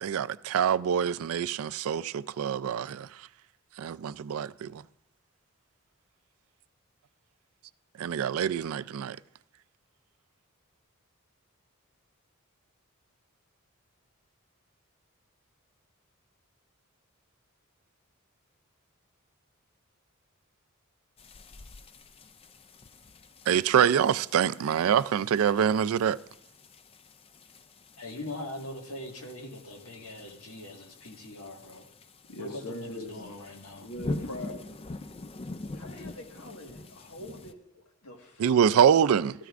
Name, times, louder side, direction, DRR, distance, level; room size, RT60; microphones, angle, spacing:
voice 1, 0.0-3.1 3.8-4.8 8.0-9.2 23.5-26.2 38.4-39.3, right 8 dB, 70° right, 0.3 m, -25 dB
sound 1, 21.2-37.5, left 2 dB, 25° left, 0.4 m, -44 dB
voice 2, 28.0-31.9 32.4-33.9, left 1 dB, 65° left, 1.7 m, -41 dB
voice 3, 32.3-33.3 33.8-34.8 35.7-38.7, left 1 dB, 90° left, 1.6 m, -42 dB
14.0 x 13.0 x 2.5 m
head